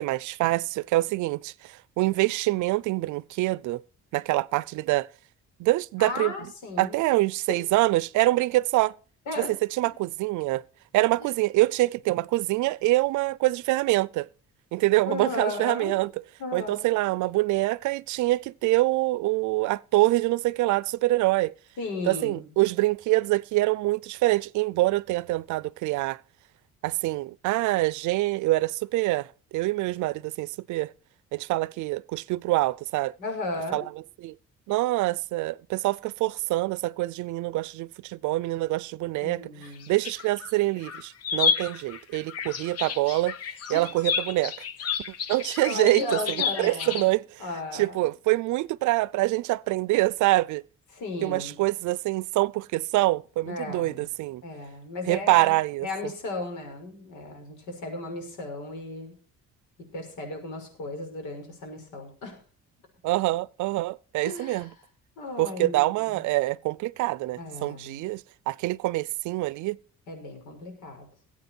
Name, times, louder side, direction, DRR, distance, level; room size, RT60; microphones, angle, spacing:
voice 1, 0.0-3.8 4.1-5.1 5.6-6.3 6.8-8.9 9.4-9.5 9.8-10.6 10.9-14.3 14.7-16.1 16.5-21.5 22.1-26.2 26.8-30.9 31.3-33.1 33.7-33.8 34.2-34.3 34.7-39.5 39.9-43.4 43.7-44.5 45.3-46.2 46.6-47.4 47.7-50.6 51.2-54.4 55.1-55.9 63.0-64.7 65.4-69.8, right 19 dB, 80° right, 0.5 m, -25 dB
voice 2, 6.0-7.0 7.5-7.6 9.3-9.5 11.2-11.4 15.1-16.0 16.4-17.0 21.8-22.5 33.2-33.9 39.2-39.9 43.7-43.9 45.6-48.1 50.9-51.6 53.4-54.1 54.4-55.5 55.8-59.1 59.8-62.4 64.2-64.7 65.2-66.2 67.4-68.0 70.1-71.1, left 2 dB, 85° left, 5.8 m, -35 dB
sound 1, 39.6-40.5 40.8-47.1, left 6 dB, 55° left, 1.1 m, -30 dB
20.0 x 8.6 x 4.5 m
cardioid pair, 145°, 29 cm